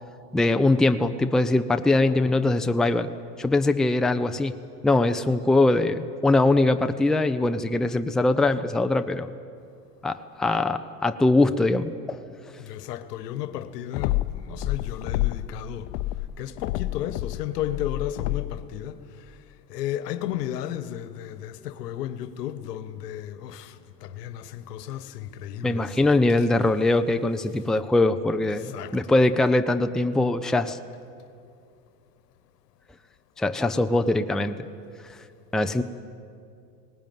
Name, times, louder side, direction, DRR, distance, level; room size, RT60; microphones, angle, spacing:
voice 1, 0.3-3.1 3.4-4.6 4.8-9.3 10.0-12.2 25.6-30.8 33.4-34.7 35.5-35.8, left 2 dB, ahead, 0.6 m, -22 dB
voice 2, 12.6-15.9 16.4-19.4 19.7-26.5 28.5-29.2, left 11 dB, 80° left, 1.3 m, -34 dB
sound 1, 13.9-15.5 15.9-18.6, left 16 dB, 60° left, 0.8 m, -29 dB
19.0 x 18.5 x 9.3 m
hypercardioid pair, 95°, 47 cm